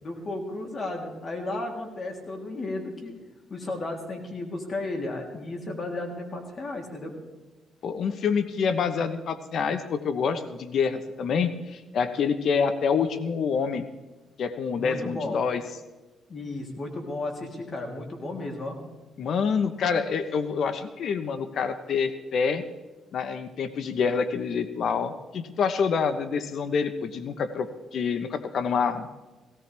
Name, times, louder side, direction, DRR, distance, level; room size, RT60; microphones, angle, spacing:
voice 1, 0.0-3.1 3.5-7.1 14.8-15.4 16.3-18.8, left 2 dB, 40° left, 1 dB, 3.2 m, -34 dB
voice 2, 7.8-13.8 14.4-15.6 19.2-22.6 23.1-29.1, left 6 dB, 65° left, 10 dB, 0.9 m, -27 dB
17.5 x 16.5 x 3.4 m, 1.2 s
cardioid pair, 90°, 0 cm